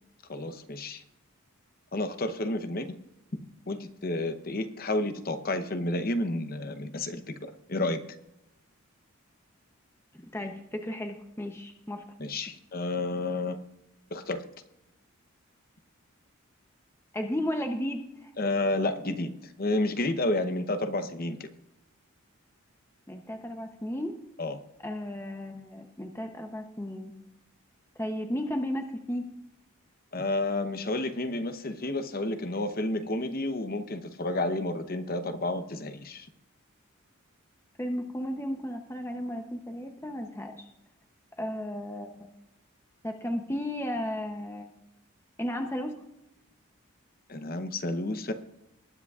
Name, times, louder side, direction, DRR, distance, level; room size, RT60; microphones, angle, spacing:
voice 1, 0.3-1.0 1.9-2.9 3.7-8.0 12.2-13.6 14.1-14.4 18.4-19.3 19.6-21.5 24.4-24.6 30.1-36.3 47.3-48.3, left 2 dB, 40° left, 10 dB, 0.8 m, -30 dB
voice 2, 10.1-12.0 17.1-18.3 23.1-24.1 24.8-27.1 28.0-29.3 37.8-40.7 41.4-42.3 43.0-44.7 45.4-46.0, equal, 10° left, 4 dB, 0.7 m, -34 dB
20.0 x 9.6 x 2.4 m, 0.91 s
head